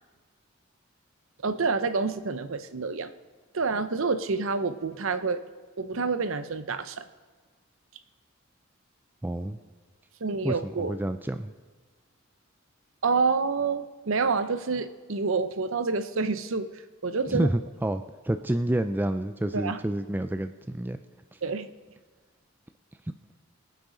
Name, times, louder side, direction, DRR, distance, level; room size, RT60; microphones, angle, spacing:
voice 1, 1.4-3.1 3.5-5.4 5.8-7.1 10.2-11.0 13.0-16.7 17.0-17.5 19.5-19.8 21.4-21.7, right 4 dB, 65° right, 11 dB, 0.7 m, -28 dB
voice 2, 9.2-9.6 10.4-11.5 17.3-21.0, right 1 dB, 10° right, 9 dB, 0.3 m, -29 dB
24.0 x 9.2 x 3.9 m, 1.4 s
head